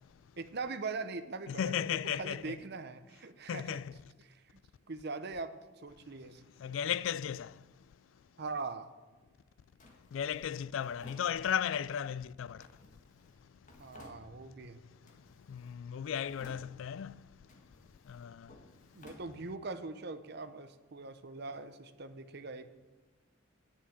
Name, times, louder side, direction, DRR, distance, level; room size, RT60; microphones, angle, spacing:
voice 1, 0.4-3.8 4.9-6.4 8.4-8.9 13.8-14.8 18.9-22.8, right 3 dB, 55° right, 0.8 m, -41 dB
voice 2, 1.5-2.6 3.5-3.9 6.6-7.5 10.1-12.6 15.5-17.1 18.1-18.5, left 8 dB, 75° left, 0.3 m, -35 dB
Drawer open or close, 9.8-11.9 12.6-14.7 15.0-15.8 16.1-17.0 17.4-19.9, left 1 dB, 40° left, 1.7 m, -58 dB
10.0 x 7.4 x 8.4 m
head